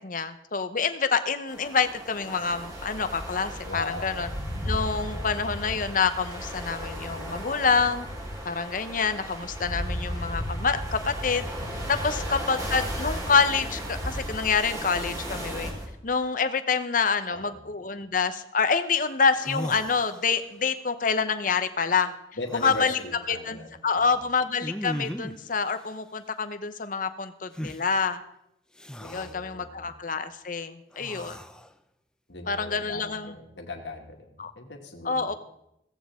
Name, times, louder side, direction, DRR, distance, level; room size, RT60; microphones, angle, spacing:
voice 1, 0.0-4.3 4.7-8.1 8.4-11.5 11.9-15.7 16.0-22.1 22.5-23.0 23.3-23.6 23.8-28.2 29.0-31.4 32.5-33.4 34.4-34.5 35.0-35.3, left 5 dB, 45° left, 10 dB, 0.9 m, -27 dB
sound 1, 1.5-15.9, equal, 20° right, 4.4 m, -34 dB
voice 2, 3.6-4.4 5.1-5.5 12.1-12.4 17.3-17.6 22.4-24.2 29.0-29.9 32.3-35.4, left 2 dB, 80° left, 2 dB, 2.2 m, -39 dB
sound 2, 19.0-19.1 19.3-20.6 22.4-23.0 24.6-25.5 27.5-27.8 28.8-29.4 30.9-31.7, equal, 5° left, 0.5 m, -37 dB
16.5 x 15.0 x 3.7 m, 0.81 s
head